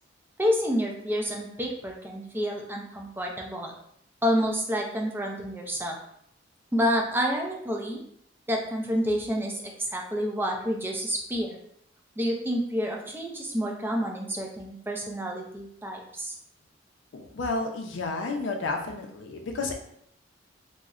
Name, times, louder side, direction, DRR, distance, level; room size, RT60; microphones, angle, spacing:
voice 1, 0.4-3.7 4.2-6.0 6.7-8.0 8.5-11.6 12.2-16.3, equal, 10° right, 0 dB, 0.4 m, -29 dB
voice 2, 17.1-19.7, left 3 dB, 70° left, 3 dB, 0.4 m, -31 dB
3.8 x 2.0 x 2.4 m, 0.70 s
head